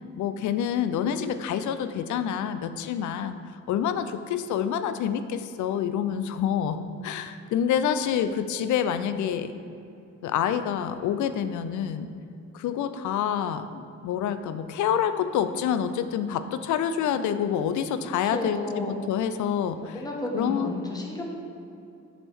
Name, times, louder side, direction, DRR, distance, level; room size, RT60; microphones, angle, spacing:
voice 1, 0.2-3.4 3.7-9.5 10.2-12.1 12.5-20.0 20.3-20.7, left 8 dB, 75° left, 11 dB, 0.5 m, -27 dB
voice 2, 18.2-19.0 19.8-21.2, left 2 dB, 10° left, -1 dB, 1.3 m, -32 dB
7.5 x 3.5 x 6.1 m, 2.6 s
cardioid pair, 90°, 30 cm